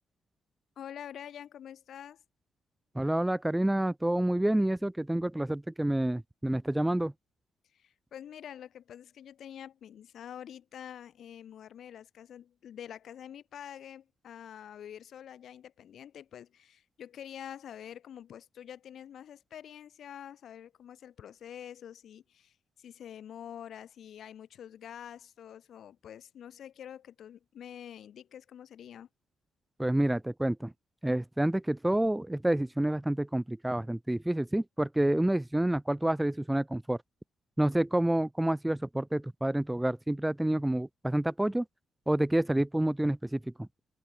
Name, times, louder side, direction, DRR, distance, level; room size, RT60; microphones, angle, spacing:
voice 1, 0.8-2.2 7.7-29.1, left 9 dB, 60° left, 7.7 m, -47 dB
voice 2, 2.9-7.1 29.8-30.7 31.0-37.0 37.6-41.6 42.1-43.7, right 1 dB, 5° right, 1.5 m, -28 dB
cardioid pair, 140°, 0 cm